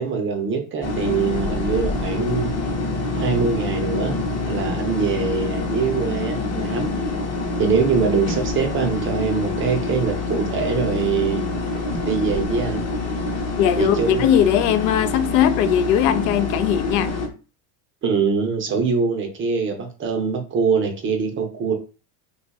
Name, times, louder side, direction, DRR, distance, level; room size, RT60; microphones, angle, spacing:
voice 1, 0.0-2.5 3.2-4.2 4.5-6.9 7.6-11.8 12.1-12.8 13.8-14.2 18.0-21.7, right 5 dB, 25° right, 0.5 m, -23 dB
sound 1, 0.8-17.3, left 2 dB, 35° left, 0.7 m, -26 dB
voice 2, 13.6-17.2, left 10 dB, 75° left, 0.6 m, -19 dB
2.7 x 2.3 x 4.0 m
supercardioid pair, 140°, 47 cm